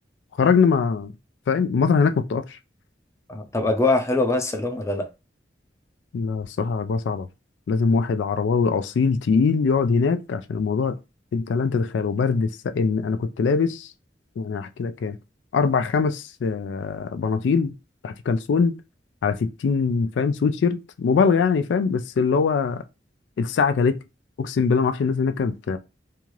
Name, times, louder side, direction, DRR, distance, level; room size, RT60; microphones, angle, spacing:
voice 1, 0.4-1.1 1.5-2.6 6.1-7.3 7.7-11.0 11.3-13.9 14.4-15.2 15.5-17.7 18.0-18.7 19.2-22.8 23.4-24.0 24.4-25.8, left 5 dB, 80° left, 0.3 m, -22 dB
voice 2, 3.3-5.1, left 2 dB, 15° left, 0.5 m, -23 dB
2.7 x 2.4 x 3.0 m
head